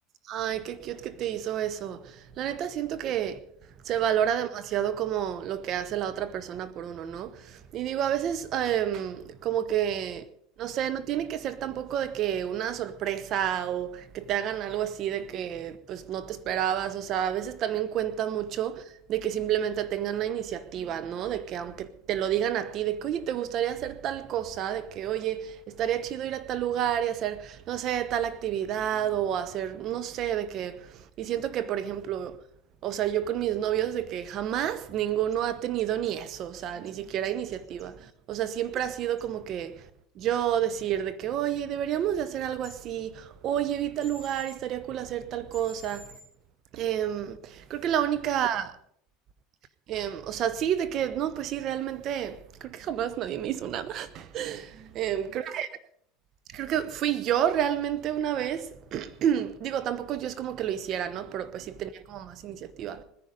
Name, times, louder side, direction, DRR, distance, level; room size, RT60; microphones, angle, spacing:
voice 1, 0.3-3.4 3.8-10.3 10.6-32.4 32.8-39.9 40.1-46.1 46.7-48.8 49.9-55.7 56.5-63.0, right 10 dB, 50° right, 1.1 m, -30 dB
sound 1, 35.3-35.4 35.8-36.9 37.2-37.8 38.3-38.4 38.7-38.8 39.2-39.3 42.6-42.8 44.0-44.5 45.5-46.2, left 2 dB, 20° right, 5.8 m, -50 dB
20.0 x 10.5 x 5.2 m
hypercardioid pair, 80°, 0 cm